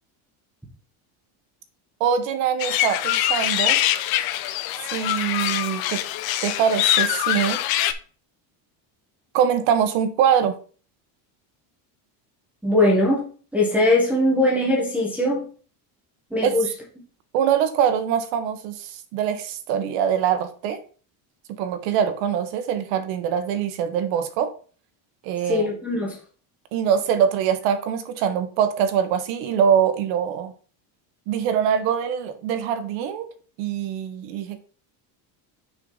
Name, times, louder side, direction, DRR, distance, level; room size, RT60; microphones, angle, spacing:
voice 1, 2.0-3.8 4.9-6.0 6.4-7.6 9.3-10.6 16.4-16.7 17.3-20.8 21.5-24.5 25.2-25.7 26.7-30.5 31.3-33.3 33.6-34.6, right 8 dB, 70° right, 9 dB, 1.2 m, -23 dB
sound 1, 2.6-7.9, left 13 dB, 50° left, 0.6 m, -23 dB
voice 2, 12.6-13.2 13.5-15.4 16.3-16.7 25.4-26.1, left 1 dB, 5° right, -5 dB, 1.4 m, -20 dB
6.3 x 5.2 x 4.0 m, 0.41 s
cardioid pair, 170°, 48 cm